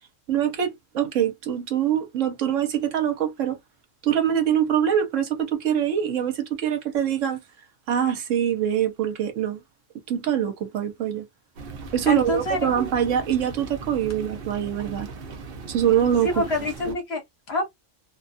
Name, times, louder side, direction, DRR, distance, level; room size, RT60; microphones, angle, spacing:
voice 1, 0.3-3.6 4.0-7.4 7.9-9.6 10.1-11.2 11.9-15.1 15.7-16.4 16.9-17.0, right 9 dB, 70° right, 1.1 m, -24 dB
sound 1, 11.6-16.9, right 4 dB, 55° right, 0.8 m, -38 dB
voice 2, 12.1-12.9 16.2-17.7, left 2 dB, 55° left, 1.1 m, -27 dB
2.5 x 2.3 x 2.5 m
omnidirectional pair, 1.4 m